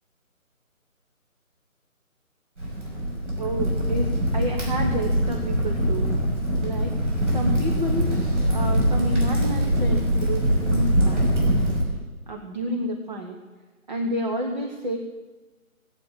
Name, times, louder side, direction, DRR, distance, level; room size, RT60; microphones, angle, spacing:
Crackle, 2.6-11.8, equal, 55° right, 5.9 m, -23 dB
voice 1, 3.4-6.1 6.6-6.9 7.3-8.1 8.5-11.7 12.3-13.4 13.9-15.0, equal, 30° right, 2 dB, 1.2 m, -30 dB
19.0 x 8.2 x 8.6 m, 1.2 s
figure-of-eight pair, 155°, 42 cm